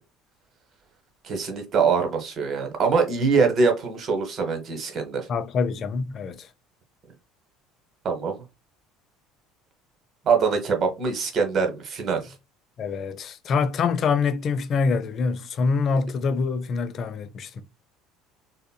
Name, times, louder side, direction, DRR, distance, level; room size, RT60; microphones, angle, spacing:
voice 1, 1.2-5.3 8.0-8.4 10.3-12.3, right 5 dB, 40° right, 1.0 m, -23 dB
voice 2, 5.3-6.5 12.8-17.6, left 5 dB, 40° left, 0.5 m, -25 dB
3.5 x 2.8 x 2.2 m
figure-of-eight pair, 60°, 0 cm